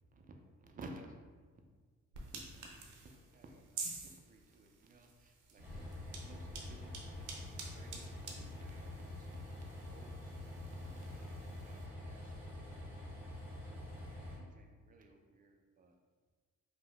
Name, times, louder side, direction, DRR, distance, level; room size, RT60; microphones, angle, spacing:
voice 1, 0.0-1.7 2.2-7.3 7.7-9.3 9.6-13.2 13.6-13.9 14.2-16.0, right 2 dB, 30° right, 3 dB, 0.4 m, -57 dB
sound 1, 2.1-11.9, right 4 dB, 80° right, 0.6 m, -50 dB
Train, 5.6-14.4, left 1 dB, 5° right, 1.0 m, -46 dB
2.7 x 2.0 x 3.3 m, 1.5 s
cardioid pair, 90°, 30 cm